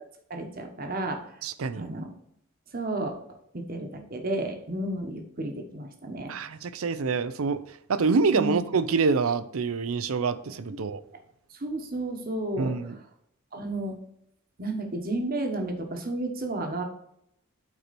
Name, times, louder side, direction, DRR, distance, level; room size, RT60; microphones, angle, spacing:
voice 1, 0.3-1.2 1.8-2.1 2.7-3.1 3.5-6.3 8.3-8.6 10.7-10.8 11.6-12.9 13.5-14.0 14.6-16.8, right 2 dB, 45° right, 4 dB, 1.2 m, -32 dB
voice 2, 1.4-1.8 6.3-7.6 7.9-11.0 12.6-13.0, right 4 dB, 85° right, 14 dB, 0.6 m, -26 dB
8.3 x 4.4 x 4.2 m, 0.75 s
head